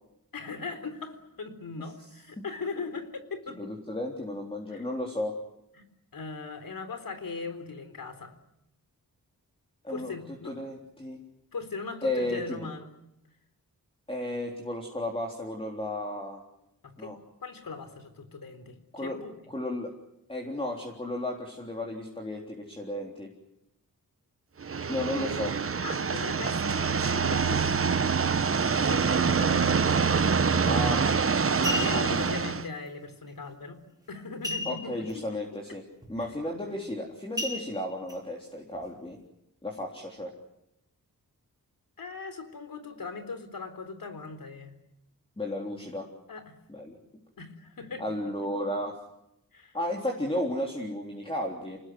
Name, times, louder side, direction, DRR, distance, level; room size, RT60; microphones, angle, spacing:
voice 1, 0.3-3.6 4.7-4.9 5.7-5.8 6.1-8.3 9.9-10.5 11.5-12.9 16.8-17.1 17.4-19.3 25.8-27.6 28.8-29.7 31.5-35.2 36.2-36.3 36.6-36.8 42.0-44.8 46.3-46.6 47.4-48.2 49.5-49.8, left 4 dB, 70° left, 9 dB, 3.9 m, -39 dB
voice 2, 3.6-5.3 9.8-10.1 10.4-11.2 12.0-12.7 14.1-16.4 17.0-17.2 18.9-19.2 19.5-19.9 20.3-23.3 24.9-25.5 28.8-28.9 29.2-29.5 30.7-31.0 31.9-32.2 34.7-35.8 36.1-39.2 39.6-40.3 45.4-46.1 46.7-47.0 48.0-49.0 49.7-51.8, left 1 dB, 15° left, 0 dB, 3.8 m, -33 dB
sound 1, 24.6-32.7, right 5 dB, 40° right, 1.0 m, -25 dB
sound 2, 30.8-31.0 31.4-32.2 34.4-35.1 35.4-35.5 36.0-36.3 37.4-38.2 38.7-38.8, left 2 dB, 10° right, 5.6 m, -34 dB
28.5 x 19.5 x 9.5 m, 0.84 s
wide cardioid pair, 125°, 35 cm